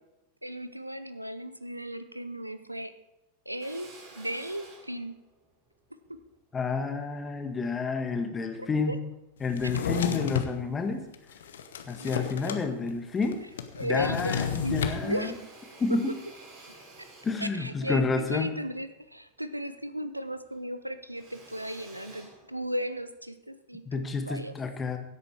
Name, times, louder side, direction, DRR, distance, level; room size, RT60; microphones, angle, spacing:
voice 1, 0.4-2.9 3.5-5.2 6.1-6.2 8.6-9.0 9.6-9.7 12.0-12.6 13.8-15.4 17.0-17.1 17.4-24.5, equal, 85° right, 12 dB, 0.7 m, -36 dB
Drill, 3.6-8.1 8.7-9.9 10.3-11.3 11.6-11.7 12.0-13.0 13.2-19.9 20.2-23.1, right 3 dB, 40° right, 4.5 m, -53 dB
voice 2, 6.5-8.9 9.4-11.0 11.9-13.4 13.8-15.3 15.8-16.1 17.2-18.5 23.9-25.0, left 4 dB, 20° left, 6 dB, 1.6 m, -30 dB
Drawer open or close, 9.5-10.5 11.1-12.6 12.9-13.0 13.2-15.0, left 8 dB, 60° left, 1.0 m, -31 dB
16.0 x 8.5 x 4.8 m, 0.97 s
figure-of-eight pair, 90°, 0 cm